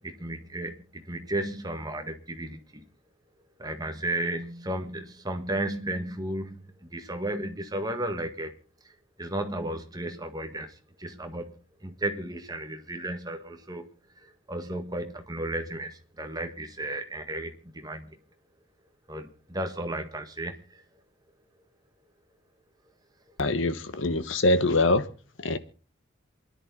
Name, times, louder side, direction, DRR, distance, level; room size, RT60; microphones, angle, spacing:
voice 1, 0.0-2.8 3.6-8.5 8.8-18.2 19.1-20.8, right 1 dB, 20° right, 6 dB, 1.6 m, -34 dB
voice 2, 23.4-25.1 25.4-25.6, left 2 dB, 65° left, 12 dB, 1.2 m, -24 dB
27.5 x 11.0 x 3.9 m, 0.37 s
head